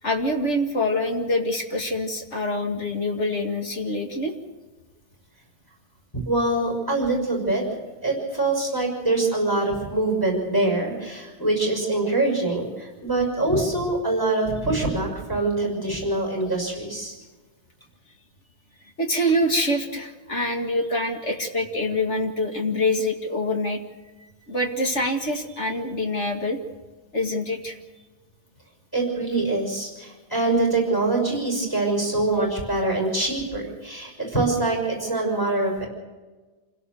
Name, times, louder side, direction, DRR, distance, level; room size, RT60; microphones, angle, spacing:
voice 1, 0.0-4.4 19.0-23.8 24.5-26.6 27.1-27.8, left 1 dB, 35° left, 3 dB, 2.2 m, -25 dB
voice 2, 6.2-7.6 8.0-17.1 28.9-35.9, right 2 dB, 10° left, 1 dB, 6.0 m, -24 dB
27.5 x 17.0 x 6.9 m, 1.3 s
omnidirectional pair, 2.3 m